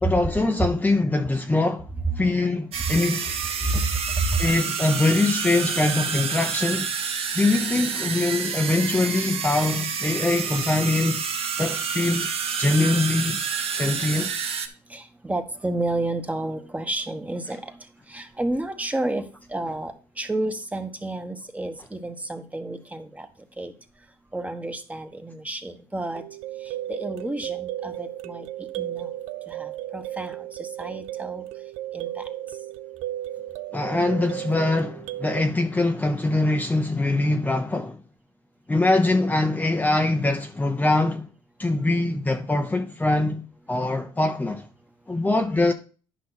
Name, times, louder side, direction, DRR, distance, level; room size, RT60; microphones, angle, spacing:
voice 1, 0.0-1.9 2.2-3.4 4.4-6.9 7.3-11.3 11.6-12.3 12.6-14.3 33.7-38.0 38.7-41.3 41.6-43.4 43.7-44.7 45.1-45.7, left 2 dB, 15° left, 0.8 m, -23 dB
sound 1, 2.7-14.7, right 6 dB, 55° right, 1.3 m, -29 dB
voice 2, 14.9-17.8 18.1-19.2 19.5-23.3 23.6-23.7 24.3-26.2 26.6-28.5 28.8-29.1 29.5-31.4 31.9-32.1, right 2 dB, 10° right, 1.3 m, -30 dB
sound 2, 26.2-35.4, right 13 dB, 70° right, 0.5 m, -34 dB
10.5 x 5.5 x 4.0 m
supercardioid pair, 80°, 12 cm